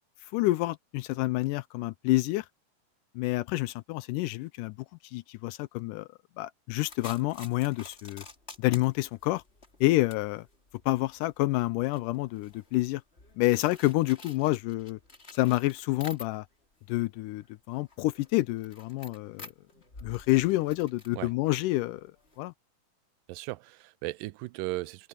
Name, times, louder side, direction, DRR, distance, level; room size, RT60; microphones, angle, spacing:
voice 1, 0.3-2.5 3.2-4.8 5.0-6.1 6.4-8.2 8.6-9.4 9.8-10.5 10.9-13.0 13.4-15.0 15.3-16.5 16.9-19.5 20.0-22.1 22.4-22.5, left 19 dB, 80° left, 2.0 m, -28 dB
sound 1, 6.8-16.6 17.0-22.4, left 3 dB, 20° left, 2.5 m, -50 dB
voice 2, 23.3-25.1, right 20 dB, 85° right, 2.2 m, -36 dB
open air
omnidirectional pair, 3.9 m